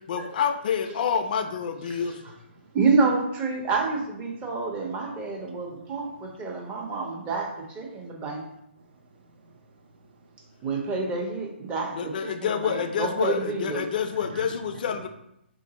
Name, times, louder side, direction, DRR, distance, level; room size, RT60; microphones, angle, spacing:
voice 1, 0.1-2.2 12.0-15.1, left 7 dB, 50° left, 8 dB, 0.3 m, -28 dB
voice 2, 2.7-8.4 10.6-12.1 12.4-13.8, right 4 dB, 20° right, 0 dB, 0.7 m, -28 dB
voice 3, 5.4-6.0 6.5-6.7 8.0-8.1 8.8-9.9 10.6-10.7 13.7-13.8 14.3-15.0, right 3 dB, 60° right, 4 dB, 0.6 m, -47 dB
3.0 x 2.6 x 3.9 m, 0.79 s
hypercardioid pair, 145°, 6 cm